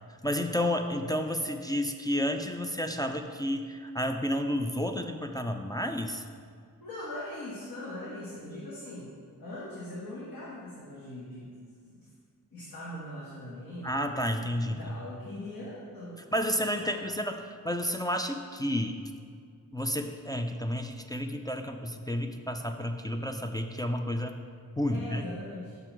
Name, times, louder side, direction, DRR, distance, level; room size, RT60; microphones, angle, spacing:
voice 1, 0.2-6.2 13.8-14.9 16.3-17.4 17.6-19.0 19.7-24.4 24.8-25.2, equal, 10° left, 4 dB, 0.3 m, -31 dB
voice 2, 6.8-9.1 9.4-11.5 11.9-12.0 12.5-14.1 14.6-16.6 16.8-17.1 24.9-25.8, left 1 dB, 75° left, -6 dB, 1.3 m, -41 dB
6.1 x 5.7 x 4.5 m, 2.1 s
wide cardioid pair, 105°, 35 cm